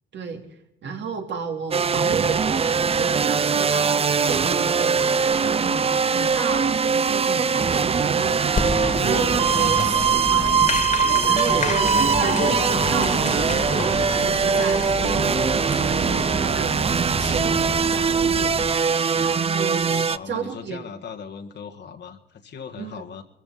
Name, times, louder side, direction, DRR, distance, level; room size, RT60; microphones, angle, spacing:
voice 1, 0.1-0.4 0.8-5.9 6.1-8.4 9.0-10.5 11.2-12.6 12.9-18.6 19.1-19.9 20.3-20.8 22.8-23.0, right 5 dB, 65° right, 4 dB, 3.2 m, -32 dB
sound 1, 1.7-20.2, right 6 dB, 30° right, 0.5 m, -21 dB
Wind instrument woodwind instrument, 5.7-13.1, right 5 dB, 90° right, 5.3 m, -49 dB
Applause, 8.6-18.7, left 4 dB, 40° left, 2.2 m, -29 dB
voice 2, 19.6-23.2, left 6 dB, 60° left, 2 dB, 1.9 m, -38 dB
23.0 x 14.5 x 4.2 m, 0.82 s
cardioid pair, 90°, 20 cm